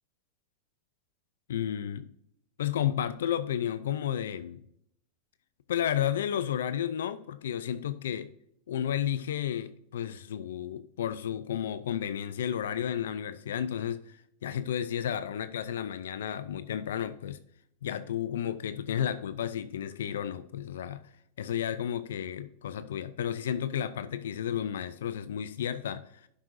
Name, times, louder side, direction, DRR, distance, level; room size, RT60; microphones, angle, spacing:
voice 1, 1.5-2.1 2.6-4.6 5.7-8.3 8.7-17.4 17.8-21.1 21.4-26.3, left 9 dB, 85° left, 13 dB, 0.5 m, -32 dB
11.5 x 6.0 x 2.6 m, 0.71 s
supercardioid pair, 125°, 0 cm